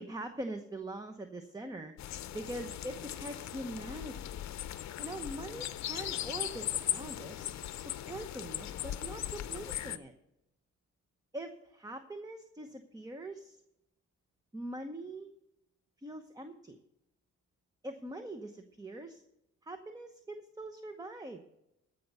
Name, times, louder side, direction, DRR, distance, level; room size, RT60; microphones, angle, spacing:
voice 1, 0.0-1.9 2.3-4.3 5.0-7.4 7.7-10.1 11.3-13.6 14.5-15.3 16.0-16.8 17.8-19.2 19.6-21.4, right 1 dB, 10° right, 7 dB, 0.9 m, -43 dB
sound 1, 2.0-10.0, left 12 dB, 65° left, 0.7 m, -38 dB
15.0 x 5.4 x 6.8 m, 0.84 s
cardioid pair, 90°, 30 cm